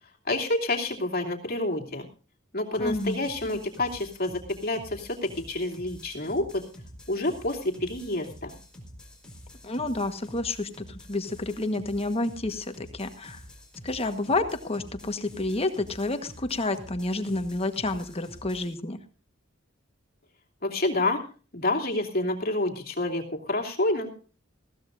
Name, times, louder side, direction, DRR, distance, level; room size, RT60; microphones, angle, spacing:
voice 1, 0.2-2.0 2.5-6.6 7.1-8.5 20.6-21.2 21.5-24.1, left 2 dB, 50° left, 2 dB, 2.9 m, -28 dB
sound 1, 2.7-18.7, equal, 5° left, 4.4 m, -48 dB
voice 2, 2.8-3.2 9.6-13.4 13.8-19.0, left 2 dB, 30° left, 8 dB, 1.3 m, -29 dB
20.5 x 16.0 x 2.6 m, 0.38 s
head